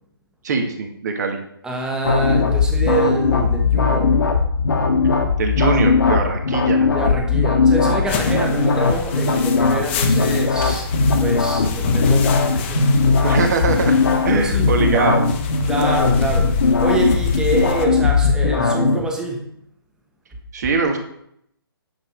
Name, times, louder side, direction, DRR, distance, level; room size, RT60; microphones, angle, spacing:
voice 1, 0.4-1.4 5.4-6.9 13.2-14.0 14.2-15.2 20.5-21.0, right 4 dB, 45° right, 1.8 m, -21 dB
voice 2, 1.6-4.2 6.9-10.9 11.2-13.2 14.3-14.7 15.6-19.5, right 1 dB, 5° right, 1.3 m, -26 dB
sound 1, 2.0-19.1, left 4 dB, 60° left, 1.5 m, -18 dB
sound 2, 8.0-17.9, left 6 dB, 30° left, 1.0 m, -30 dB
9.5 x 6.8 x 4.6 m
figure-of-eight pair, 140°, 13 cm